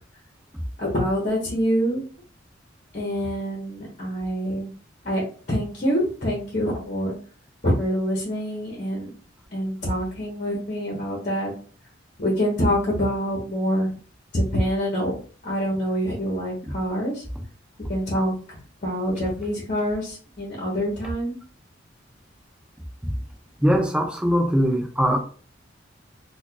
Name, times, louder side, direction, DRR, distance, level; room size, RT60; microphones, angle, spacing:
voice 1, 0.8-2.0 2.9-4.7 5.0-7.1 7.6-9.1 9.5-11.5 12.2-13.9 14.3-15.1 15.4-17.2 17.9-21.4, equal, 40° left, 1.1 m, -26 dB
voice 2, 23.6-25.2, equal, 5° right, 0.7 m, -21 dB
4.3 x 2.5 x 2.4 m
head